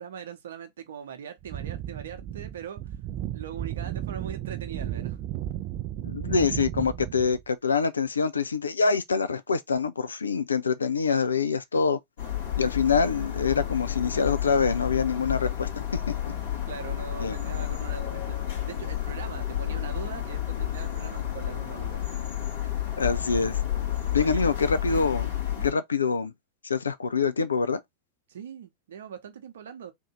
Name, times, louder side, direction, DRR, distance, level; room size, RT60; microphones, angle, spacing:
voice 1, 0.0-3.0 3.3-5.2 16.7-22.3 22.6-22.7 24.1-24.6 25.6-25.7 28.3-29.9, right 7 dB, 60° right, 0.8 m, -41 dB
sound 1, 1.4-7.4, right 12 dB, 40° right, 0.4 m, -34 dB
voice 2, 6.0-12.0 12.6-16.0 17.2-17.4 23.0-23.6 24.1-25.3 25.6-26.3 26.6-27.8, left 5 dB, 75° left, 0.4 m, -25 dB
sound 2, 12.2-25.7, left 11 dB, 60° left, 2.0 m, -31 dB
3.8 x 2.6 x 3.0 m
figure-of-eight pair, 90°, 0 cm